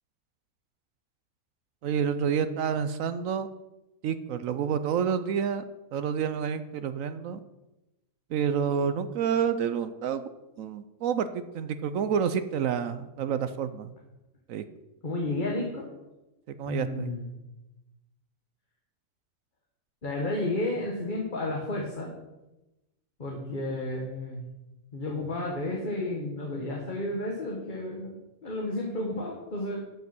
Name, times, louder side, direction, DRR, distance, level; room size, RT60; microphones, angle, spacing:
voice 1, 1.8-3.5 4.0-5.6 5.9-7.4 8.3-10.3 10.6-13.9 14.5-14.6 16.5-17.1, right 7 dB, 65° right, 11 dB, 0.9 m, -29 dB
voice 2, 15.0-15.9 16.6-17.3 20.0-22.1 23.2-24.4 24.9-29.8, left 2 dB, 30° left, -1 dB, 1.7 m, -32 dB
12.5 x 5.4 x 6.0 m, 0.99 s
omnidirectional pair, 1.7 m